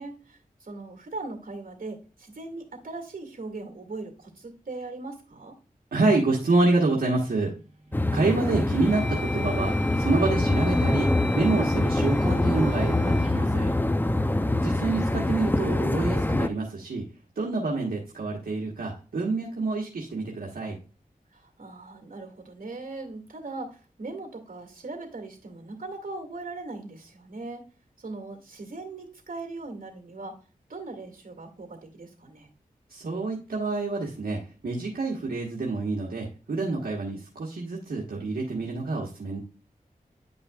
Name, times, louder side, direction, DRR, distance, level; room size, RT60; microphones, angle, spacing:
voice 1, 0.0-5.5 21.3-27.6 28.0-30.3 30.7-32.5, right 3 dB, 70° right, 3 dB, 2.2 m, -39 dB
voice 2, 5.9-7.5 8.1-13.7 14.6-17.1 17.3-20.8 32.9-39.4, right 3 dB, 90° right, -2 dB, 1.3 m, -27 dB
sound 1, 7.5-8.0 8.5-14.6, left 2 dB, 50° right, 2.0 m, -40 dB
sound 2, 7.9-16.5, left 1 dB, 15° left, 0.6 m, -25 dB
10.0 x 5.5 x 2.4 m, 0.36 s
cardioid pair, 45°, 15 cm